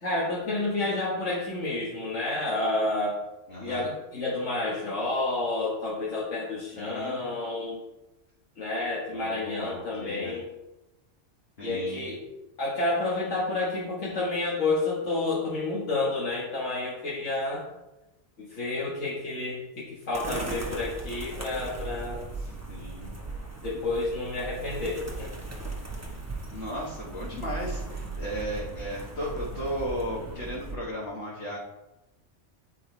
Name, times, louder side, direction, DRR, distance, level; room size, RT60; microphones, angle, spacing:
voice 1, 0.0-3.2 3.6-7.8 8.6-10.5 11.6-12.2 12.6-17.7 18.4-22.2 23.6-25.3, left 2 dB, 80° left, -7 dB, 1.9 m, -30 dB
voice 2, 3.5-3.9 6.7-7.3 9.1-10.4 11.6-12.0 22.4-23.1 26.5-31.6, equal, 55° left, -6 dB, 1.7 m, -35 dB
sound 1, 20.1-30.8, right 3 dB, 15° right, 1.1 m, -37 dB
9.2 x 4.7 x 4.5 m, 0.97 s
omnidirectional pair, 1.3 m